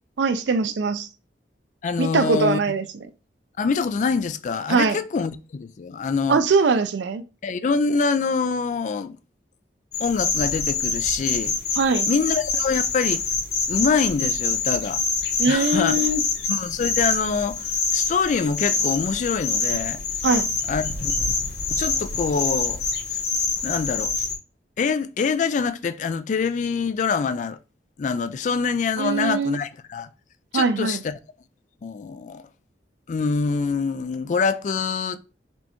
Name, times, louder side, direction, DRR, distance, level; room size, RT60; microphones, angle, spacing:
voice 1, 0.2-1.1 2.0-2.8 4.7-5.0 6.3-7.2 11.8-12.1 15.4-16.2 20.2-20.5 29.0-29.6 30.5-31.0, right 4 dB, 85° right, 0.4 m, -21 dB
voice 2, 1.8-2.6 3.6-6.4 7.4-9.2 10.0-11.5 12.1-13.2 13.7-15.0 15.5-16.1 16.5-20.0 20.7-21.3 21.7-22.8 23.1-23.2 23.6-24.1 24.8-27.6 28.0-30.1 30.5-31.1 31.8-32.5 33.1-35.2, left 5 dB, 45° left, 0.3 m, -25 dB
sound 1, 9.9-24.4, left 4 dB, 65° left, 0.9 m, -26 dB
4.2 x 3.3 x 3.0 m
head